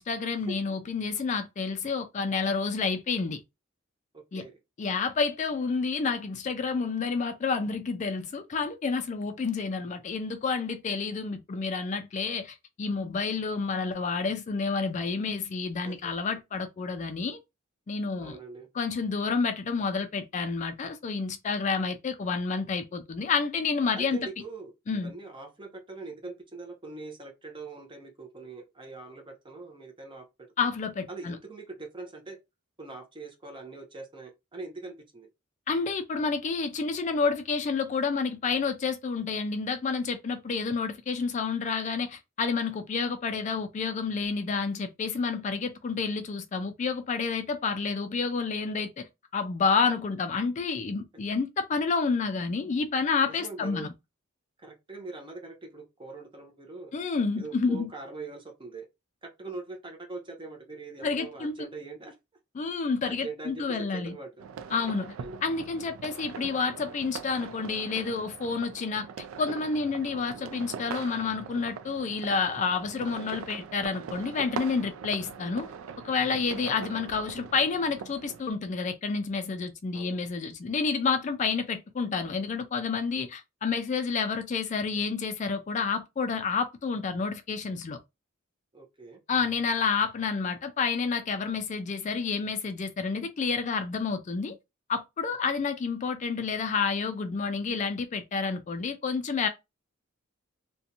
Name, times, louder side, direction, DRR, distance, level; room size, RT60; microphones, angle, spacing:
voice 1, 0.0-3.4 4.3-4.4 4.8-17.4 17.9-18.4 18.8-24.2 24.9-25.1 30.6-31.4 35.7-49.1 49.3-53.9 56.9-57.9 61.0-61.7 62.6-64.2 64.7-65.1 65.4-69.1 69.4-75.7 76.0-88.0 89.3-94.6 94.9-99.5, left 5 dB, 35° left, 0.3 m, -29 dB
voice 2, 4.1-4.5 15.9-16.0 18.2-18.7 24.0-24.7 25.0-30.3 31.1-32.4 32.8-35.3 53.3-53.9 54.6-56.9 57.4-58.9 59.2-62.1 63.1-64.5 65.2-65.4 76.4-76.5 79.9-80.3 88.7-89.2, right 3 dB, 25° right, 0.6 m, -42 dB
sound 1, 64.4-78.4, right 6 dB, 85° right, 0.3 m, -42 dB
2.6 x 2.2 x 2.7 m
head